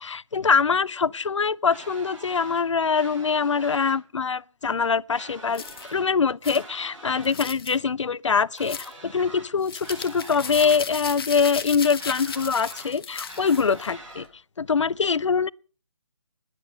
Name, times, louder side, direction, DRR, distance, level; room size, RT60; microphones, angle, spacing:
voice 1, 0.0-5.6 5.9-14.3 14.6-15.5, left 5 dB, 70° left, 0.5 m, -24 dB
sound 1, 1.7-2.6 2.9-4.0 5.1-6.1 6.4-7.4 8.6-9.5 9.8-10.8 12.0-12.9 13.3-14.3, right 1 dB, 80° right, 7.8 m, -43 dB
sound 2, 5.5-5.9 6.4-6.6 7.2-7.8 8.6-8.9 9.6-13.9, left 6 dB, 50° left, 1.6 m, -36 dB
20.5 x 7.9 x 5.5 m
figure-of-eight pair, 150°, 16 cm